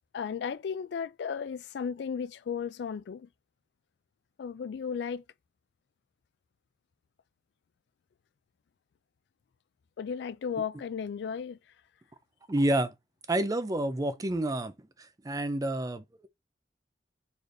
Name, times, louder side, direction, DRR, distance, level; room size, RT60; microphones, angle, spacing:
voice 1, 0.1-3.3 4.4-5.2 10.0-11.6, left 6 dB, 65° left, 0.3 m, -35 dB
voice 2, 12.5-12.9 13.3-14.7 15.2-16.3, right 1 dB, 20° right, 0.4 m, -28 dB
4.2 x 3.2 x 2.6 m
head